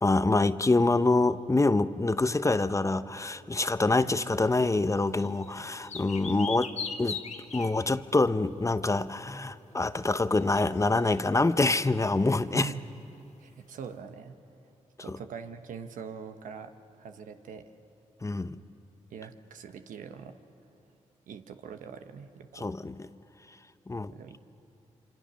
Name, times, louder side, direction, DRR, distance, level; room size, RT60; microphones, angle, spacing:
voice 1, 0.0-6.7 7.0-7.2 7.5-12.7 18.2-18.6 22.6-23.0 23.9-24.1, left 2 dB, 25° left, 13 dB, 0.8 m, -26 dB
sound 1, 4.4-4.5 5.0-8.0 10.3-12.0, left 5 dB, 60° left, 1.5 m, -39 dB
voice 2, 13.4-14.4 15.0-17.7 19.1-20.4 21.3-22.7 24.1-24.4, right 6 dB, 85° right, 7 dB, 1.1 m, -43 dB
26.0 x 25.0 x 6.4 m, 2.6 s
supercardioid pair, 50°, 13 cm